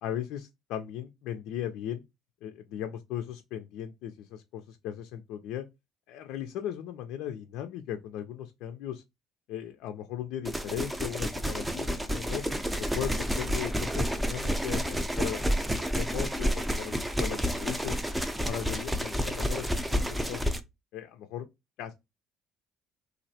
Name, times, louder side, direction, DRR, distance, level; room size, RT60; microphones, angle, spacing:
voice 1, 0.0-2.0 2.4-5.6 6.1-9.0 9.5-12.4 12.7-18.0 18.4-20.0 20.3-20.5 20.9-21.5 21.8-21.9, left 10 dB, 75° left, 0.4 m, -37 dB
sound 1, 10.4-20.6, equal, 10° right, 0.5 m, -30 dB
3.1 x 2.5 x 2.7 m
supercardioid pair, 75°, 0 cm